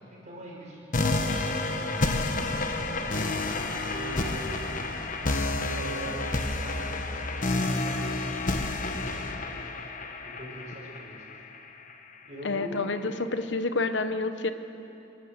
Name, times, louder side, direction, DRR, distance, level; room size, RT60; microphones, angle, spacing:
voice 1, 0.1-1.9 2.8-3.3 3.6-4.7 5.7-6.3 6.6-9.6 10.2-11.5 12.2-12.8, right 1 dB, 40° right, -4 dB, 6.3 m, -42 dB
sound 1, 0.9-11.9, left 2 dB, 45° left, 1.2 m, -30 dB
voice 2, 12.4-14.5, left 3 dB, 65° left, 10 dB, 0.9 m, -28 dB
27.0 x 13.0 x 7.9 m, 2.9 s
head